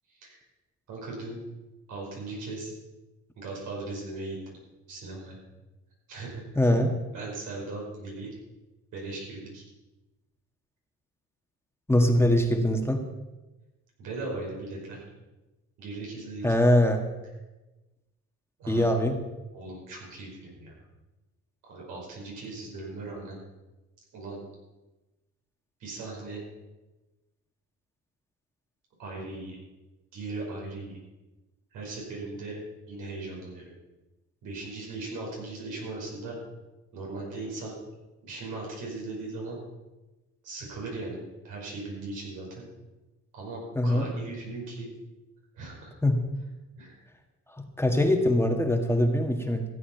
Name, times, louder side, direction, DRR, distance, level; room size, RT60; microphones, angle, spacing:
voice 1, 0.1-0.4 0.9-1.4 1.9-2.7 3.4-4.4 4.9-5.4 6.1-6.7 7.1-8.3 8.9-9.6 14.0-15.0 15.8-16.5 18.6-19.0 19.5-20.8 21.7-23.4 24.1-24.4 25.8-26.4 29.0-29.6 30.1-31.0 31.7-32.6 32.9-33.7 34.4-36.4 36.9-37.7 38.2-39.6 40.4-42.6 43.3-44.9 45.5-45.9 46.8-47.0, right 2 dB, 90° right, -2 dB, 5.5 m, -38 dB
voice 2, 6.5-6.9 11.9-13.0 16.4-17.0 18.7-19.2 43.7-44.1 46.0-46.2 47.8-49.6, left 1 dB, 10° left, 3 dB, 1.6 m, -22 dB
15.0 x 8.4 x 5.8 m, 1.1 s
cardioid pair, 90°, 30 cm